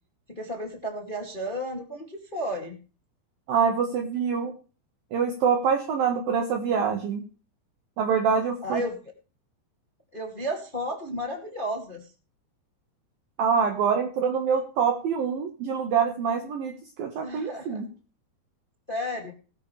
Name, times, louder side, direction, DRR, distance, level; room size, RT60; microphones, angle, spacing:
voice 1, 0.3-2.8 8.6-9.0 10.1-12.0 17.2-17.8 18.9-19.3, equal, 20° left, 2 dB, 1.5 m, -33 dB
voice 2, 3.5-4.5 5.1-7.2 8.0-8.8 13.4-16.7 17.0-17.9, right 6 dB, 60° right, 3 dB, 3.0 m, -25 dB
19.0 x 10.0 x 3.3 m, 0.36 s
omnidirectional pair, 5.1 m